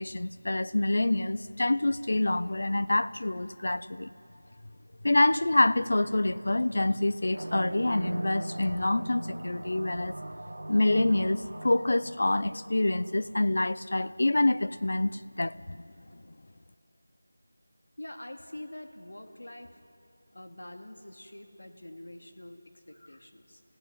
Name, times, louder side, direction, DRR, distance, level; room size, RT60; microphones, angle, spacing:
voice 1, 0.0-4.1 5.0-10.2 10.7-15.8, left 2 dB, 45° left, 15 dB, 0.6 m, -26 dB
sound 1, 7.3-13.5, right 1 dB, 65° right, 1.5 m, -39 dB
voice 2, 18.0-19.8 20.3-23.6, left 1 dB, 75° left, 5 dB, 2.5 m, -45 dB
29.0 x 15.5 x 9.9 m, 2.7 s
figure-of-eight pair, 180°, 0 cm